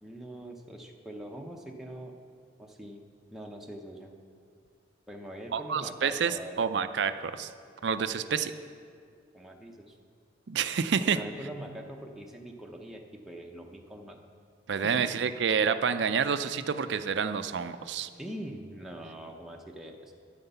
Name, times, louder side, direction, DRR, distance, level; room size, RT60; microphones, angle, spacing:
voice 1, 0.0-2.2 2.6-3.0 3.3-4.1 5.1-6.6 8.3-8.5 9.3-10.0 11.1-14.2 14.8-15.1 15.6-15.7 18.1-20.1, right 1 dB, ahead, 0 dB, 0.7 m, -43 dB
voice 2, 5.5-7.5 7.8-8.5 10.5-11.2 14.7-18.1, right 6 dB, 70° right, 11 dB, 0.4 m, -28 dB
9.5 x 9.1 x 6.8 m, 2.2 s
head